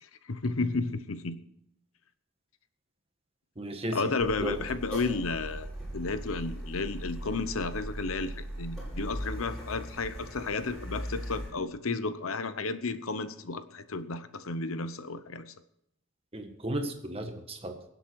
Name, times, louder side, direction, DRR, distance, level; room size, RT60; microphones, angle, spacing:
voice 1, 0.0-1.4 3.9-5.7 5.9-15.5, left 3 dB, 80° left, 12 dB, 0.9 m, -32 dB
voice 2, 3.6-4.0 4.4-4.6 16.3-17.8, right 1 dB, 30° right, 4 dB, 1.7 m, -34 dB
Car, 4.2-11.5, equal, ahead, 5.9 m, -39 dB
24.0 x 8.1 x 4.7 m, 0.78 s
head